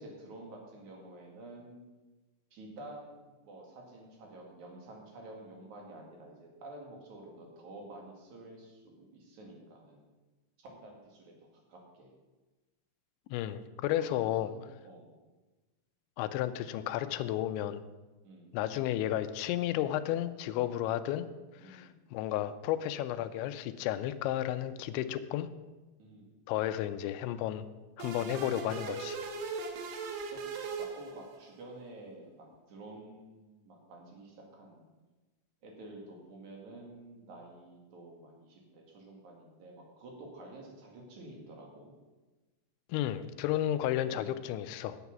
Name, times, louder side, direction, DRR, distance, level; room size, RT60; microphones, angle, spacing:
voice 1, 0.0-1.8 2.5-10.1 10.6-12.1 14.0-14.1 14.4-15.2 18.2-18.6 21.6-22.0 26.0-26.3 28.1-28.3 30.3-30.4 30.8-34.8 35.6-41.9 44.1-44.4, right 2 dB, 50° right, 0 dB, 2.9 m, -50 dB
voice 2, 13.3-14.5 16.2-17.8 18.5-21.3 21.6-25.5 26.5-27.7 28.0-29.2 42.9-45.0, left 12 dB, 85° left, 11 dB, 2.9 m, -32 dB
sound 1, 28.0-31.6, right 4 dB, 70° right, 3.0 m, -39 dB
10.5 x 8.2 x 5.9 m, 1.2 s
omnidirectional pair, 5.3 m